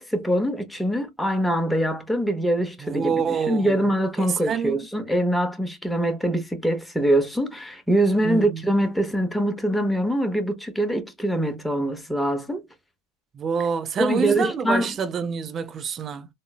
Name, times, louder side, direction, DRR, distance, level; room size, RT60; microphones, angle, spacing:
voice 1, 0.0-12.7 14.0-14.9, right 1 dB, 5° left, 0.7 m, -24 dB
voice 2, 2.8-3.9 4.2-4.8 8.2-8.6 13.3-16.3, right 6 dB, 30° right, 0.5 m, -27 dB
3.7 x 2.0 x 2.3 m
hypercardioid pair, 85°, 0 cm